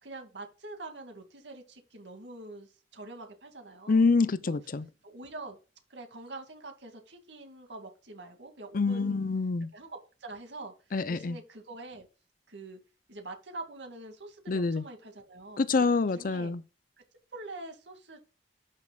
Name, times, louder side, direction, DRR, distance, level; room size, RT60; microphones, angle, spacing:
voice 1, 0.0-4.0 4.5-4.6 5.0-5.6 5.9-9.2 9.7-10.7 11.1-12.1 12.5-12.8 13.1-15.6 16.1-16.5 17.3-18.2, right 2 dB, 85° right, 2.4 m, -45 dB
voice 2, 3.9-4.9 8.7-9.7 10.9-11.4 14.5-14.8 15.6-16.6, left 4 dB, 50° left, 0.5 m, -26 dB
12.0 x 6.4 x 2.4 m
head